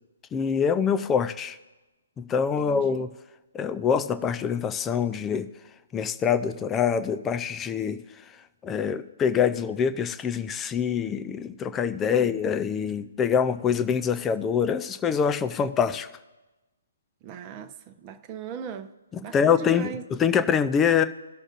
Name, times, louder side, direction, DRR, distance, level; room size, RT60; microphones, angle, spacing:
voice 1, 0.3-1.6 2.2-3.1 3.5-5.5 5.9-8.0 8.6-16.1 19.1-21.0, left 7 dB, 15° left, 0.5 m, -25 dB
voice 2, 2.6-3.0 12.1-12.3 17.2-17.7 18.0-18.9 19.2-20.0, right 5 dB, 25° right, 0.8 m, -37 dB
19.0 x 6.4 x 2.5 m
figure-of-eight pair, 130°, 0 cm